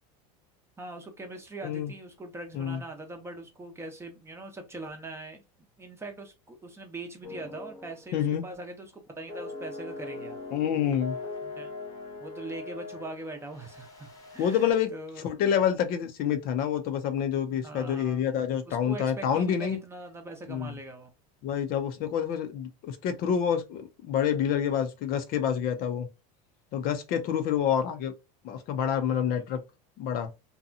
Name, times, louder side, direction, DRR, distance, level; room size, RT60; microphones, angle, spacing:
voice 1, 0.8-5.4 5.8-10.4 11.4-11.7 12.2-14.7 14.9-15.3 17.5-18.2 18.7-21.1 29.1-29.2, right 2 dB, 15° right, 0.7 m, -42 dB
sound 1, 7.2-8.0 8.3-8.5 9.3-14.7, left 3 dB, 20° left, 0.8 m, -41 dB
voice 2, 8.1-8.4 10.5-11.2 14.4-14.9 15.2-19.8 20.5-20.7 21.4-26.1 26.7-28.1 28.4-29.6 30.0-30.3, left 8 dB, 50° left, 0.5 m, -27 dB
2.7 x 2.2 x 2.5 m
supercardioid pair, 120°, 20 cm